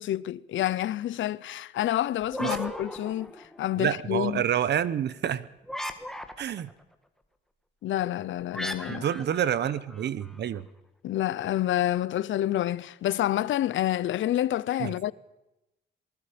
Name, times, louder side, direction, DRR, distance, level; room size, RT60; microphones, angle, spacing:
voice 1, 0.0-4.4 7.8-9.0 11.0-15.1, left 13 dB, 85° left, 0.7 m, -28 dB
sound 1, 2.2-3.8 5.6-6.7 8.5-10.4, equal, ahead, 1.3 m, -37 dB
voice 2, 3.8-5.5 6.4-6.7 8.9-10.7 14.8-14.9, right 9 dB, 60° right, 0.9 m, -28 dB
27.5 x 20.0 x 5.1 m
wide cardioid pair, 155°, 20 cm